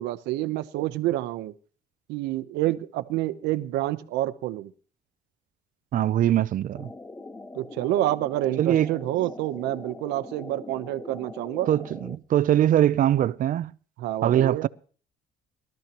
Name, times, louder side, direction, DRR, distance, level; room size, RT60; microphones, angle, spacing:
voice 1, 0.0-1.5 2.1-4.7 7.5-11.7 14.0-14.7, right 15 dB, 90° right, 0.9 m, -28 dB
voice 2, 5.9-6.9 8.6-8.9 11.7-13.7 14.2-14.7, right 11 dB, 55° right, 0.6 m, -22 dB
sound 1, 6.7-12.2, left 2 dB, 10° left, 0.7 m, -42 dB
22.5 x 13.0 x 3.0 m
cardioid pair, 110°, 17 cm